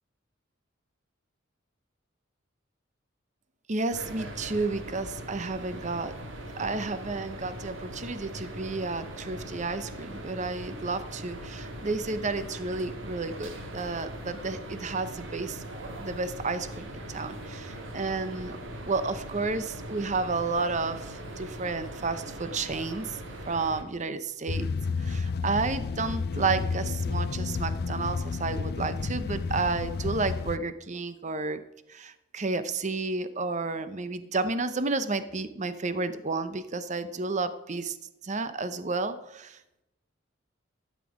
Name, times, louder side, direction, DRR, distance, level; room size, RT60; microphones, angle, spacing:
voice 1, 3.7-6.1 6.5-15.6 16.0-18.6 18.8-23.1 23.5-24.7 25.0-31.6 31.9-38.0 38.2-39.6, right 3 dB, 40° right, 12 dB, 0.8 m, -31 dB
sound 1, 3.9-23.8, right 1 dB, 85° right, 1.9 m, -40 dB
sound 2, 24.5-30.6, left 4 dB, 55° left, 0.5 m, -31 dB
13.0 x 8.4 x 4.9 m, 0.88 s
head